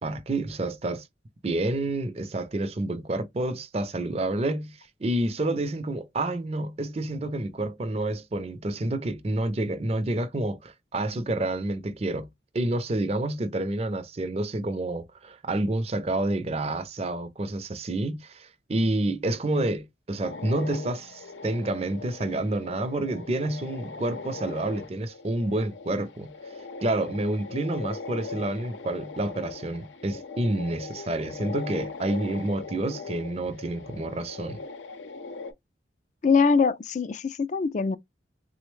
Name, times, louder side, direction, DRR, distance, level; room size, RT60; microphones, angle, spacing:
voice 1, 0.0-1.1 1.4-12.3 12.5-26.3 26.8-34.6, right 2 dB, 35° right, 0.5 m, -29 dB
sound 1, 20.2-35.5, left 4 dB, 85° left, 0.6 m, -40 dB
voice 2, 36.2-38.0, left 5 dB, 40° left, 0.3 m, -23 dB
3.7 x 2.1 x 3.1 m
head